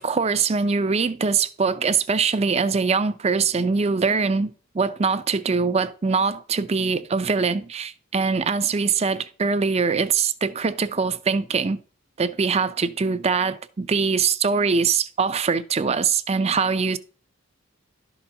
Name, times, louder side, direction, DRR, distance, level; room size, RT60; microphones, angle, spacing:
voice 1, 0.0-11.8 12.2-17.0, right 5 dB, 30° right, 0.5 m, -23 dB
11.5 x 4.0 x 5.6 m
head